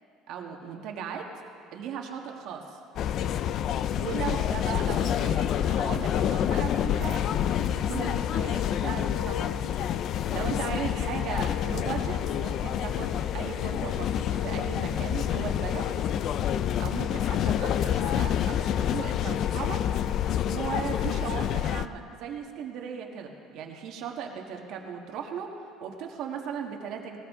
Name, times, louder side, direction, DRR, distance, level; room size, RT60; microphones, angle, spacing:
voice 1, 0.3-1.3 1.7-2.8 4.0-15.9 16.8-19.8 20.4-25.5 25.8-27.2, right 7 dB, 55° right, 2 dB, 1.5 m, -37 dB
sound 1, 3.0-21.9, left 10 dB, 40° left, 0.4 m, -28 dB
19.5 x 18.5 x 3.7 m, 2.5 s
cardioid pair, 165°, 0 cm